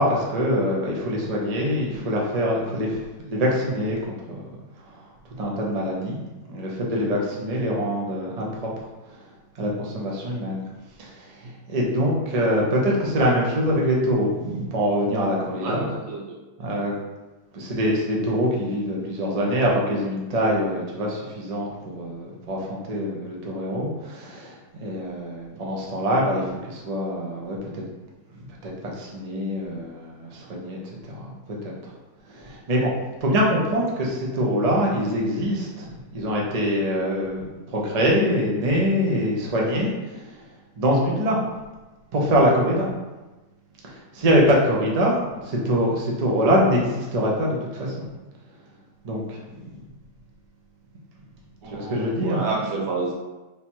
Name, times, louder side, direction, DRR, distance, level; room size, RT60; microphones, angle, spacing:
voice 1, 0.0-4.0 4.3-4.4 4.9-5.0 5.4-6.2 6.5-8.7 9.6-10.6 11.0-11.4 11.7-15.9 16.6-16.9 17.5-27.8 28.4-30.8 31.0-31.7 32.3-32.9 33.2-40.4 40.8-41.4 42.1-42.9 43.8-48.1 49.0-49.7 51.6-52.4, equal, 40° right, -3 dB, 0.5 m, -24 dB
voice 2, 16.1-16.4 51.6-53.1, right 3 dB, 85° right, -1 dB, 1.4 m, -30 dB
3.3 x 2.8 x 4.5 m, 1.1 s
omnidirectional pair, 1.7 m